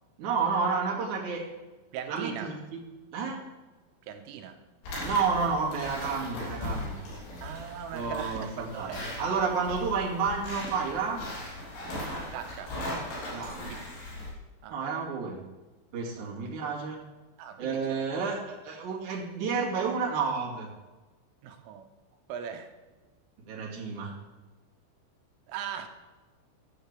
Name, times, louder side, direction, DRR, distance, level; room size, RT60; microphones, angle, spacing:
voice 1, 0.2-1.4 2.1-2.8 3.1-3.4 5.0-6.9 7.9-11.2 13.3-13.7 14.7-15.4 15.9-17.0 17.6-18.4 18.6-20.7 23.5-24.2, right 5 dB, 50° right, -3 dB, 3.0 m, -30 dB
voice 2, 1.9-2.6 4.1-4.6 7.4-9.0 12.3-12.8 13.7-14.0 14.6-14.8 16.2-16.3 17.4-18.1 21.4-21.9 22.3-22.7 25.5-25.9, right 8 dB, 85° right, 6 dB, 3.5 m, -39 dB
sound 1, 4.8-14.3, left 1 dB, 70° left, 5.7 m, -38 dB
14.0 x 11.5 x 3.4 m, 1.2 s
omnidirectional pair, 5.7 m